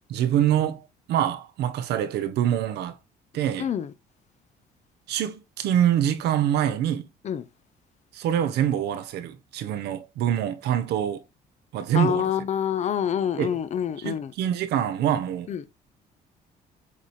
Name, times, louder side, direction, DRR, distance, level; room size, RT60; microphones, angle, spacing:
voice 1, 0.1-2.9 3.3-3.7 5.1-7.1 8.1-11.2 11.7-12.3 13.4-13.5 14.0-15.5, right 10 dB, 75° right, 0.9 m, -25 dB
voice 2, 3.6-3.9 7.2-7.4 11.9-14.3 15.5-15.6, left 9 dB, 45° left, 0.6 m, -26 dB
7.4 x 4.1 x 3.2 m
cardioid pair, 110°, 17 cm